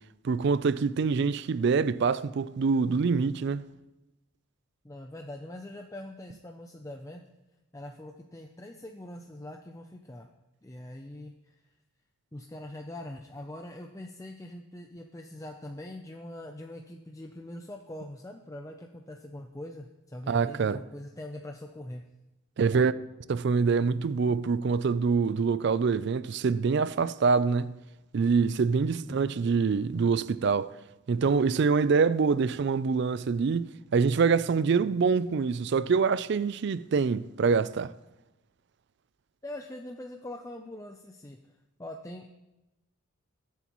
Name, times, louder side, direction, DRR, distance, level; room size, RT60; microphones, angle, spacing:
voice 1, 0.2-3.7 20.3-20.8 22.6-22.9 23.3-27.8 28.1-30.7 31.1-37.9, right 5 dB, 50° right, 0.3 m, -25 dB
voice 2, 4.8-7.2 7.7-10.3 10.6-11.6 12.3-22.1 28.9-29.3 39.4-42.3, left 1 dB, 15° left, 0.5 m, -43 dB
21.5 x 8.2 x 3.0 m
head